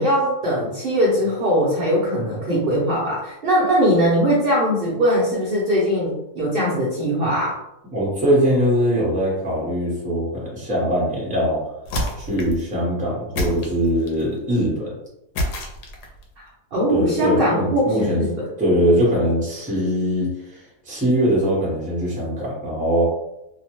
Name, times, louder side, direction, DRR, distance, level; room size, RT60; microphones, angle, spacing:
voice 1, 0.0-7.6 16.7-18.5, equal, 60° right, -5 dB, 0.6 m, -20 dB
voice 2, 7.9-11.6 12.2-14.9 16.9-18.3 18.6-23.1, equal, 5° right, -6 dB, 0.6 m, -21 dB
sound 1, 11.9-12.7 13.4-14.3 15.4-16.2, left 1 dB, 90° left, 1.2 m, -27 dB
2.8 x 2.1 x 2.9 m, 0.88 s
omnidirectional pair, 1.7 m